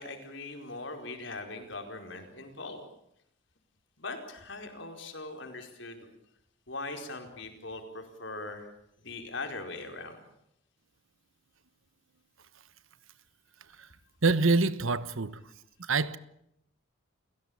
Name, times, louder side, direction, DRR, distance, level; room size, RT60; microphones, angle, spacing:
voice 1, 0.0-2.8 4.0-6.0 6.7-8.7 9.0-10.2, left 3 dB, 60° left, 4.7 m, -40 dB
voice 2, 14.2-15.4 15.8-16.2, right 3 dB, 70° right, 1.1 m, -25 dB
29.5 x 17.0 x 8.8 m
head